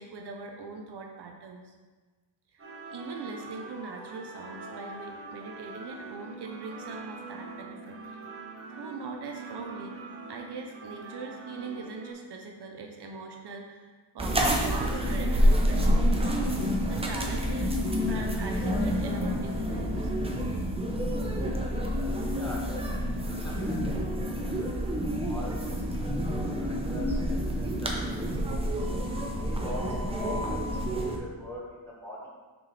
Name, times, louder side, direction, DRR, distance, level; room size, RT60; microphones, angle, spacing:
voice 1, 0.0-1.7 2.5-2.6 2.9-8.2 8.8-10.0 10.3-16.2 16.8-20.1, right 3 dB, 60° right, 2 dB, 0.7 m, -41 dB
sound 1, 2.6-12.1, right 3 dB, 30° right, 1.2 m, -43 dB
sound 2, 14.2-31.2, equal, 10° right, 0.6 m, -28 dB
voice 2, 22.3-24.7 25.2-25.7 26.0-26.2 26.5-28.6 29.3-30.4 30.8-32.3, equal, 5° left, -5 dB, 1.2 m, -43 dB
6.2 x 4.6 x 4.1 m, 1.4 s
wide cardioid pair, 175°, 47 cm